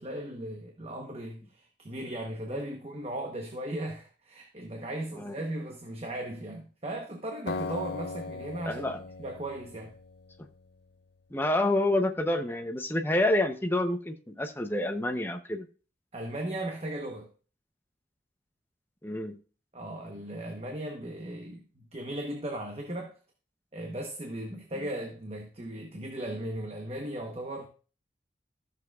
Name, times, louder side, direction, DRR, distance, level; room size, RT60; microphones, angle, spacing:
voice 1, 0.0-8.9 9.2-9.9 16.1-17.3 19.7-23.1 23.7-27.7, right 1 dB, 35° right, 1.0 m, -37 dB
Acoustic guitar, 7.5-10.6, left 3 dB, 65° left, 0.5 m, -38 dB
voice 2, 8.7-9.0 11.3-15.7 19.0-19.4, left 1 dB, 10° left, 0.7 m, -28 dB
13.5 x 6.7 x 2.4 m
head